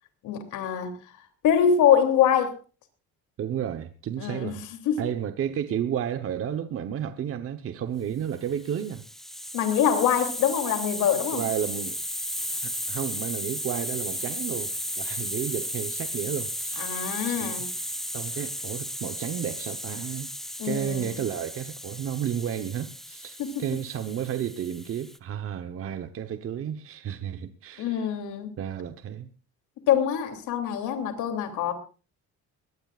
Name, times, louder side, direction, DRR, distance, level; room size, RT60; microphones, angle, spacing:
voice 1, 0.2-0.9 1.4-2.5 4.2-5.0 9.5-11.4 16.8-17.7 20.6-21.1 23.4-23.5 27.8-28.5 29.9-31.7, left 8 dB, 75° left, 3.1 m, -24 dB
voice 2, 3.4-4.6 5.0-9.0 11.3-12.0 12.6-16.9 17.3-17.6 18.1-20.3 20.6-28.1 28.6-29.3, right 9 dB, 45° right, 1.0 m, -32 dB
Hiss, 8.5-25.2, equal, ahead, 0.9 m, -34 dB
21.5 x 18.0 x 2.5 m
cardioid pair, 145°, 31 cm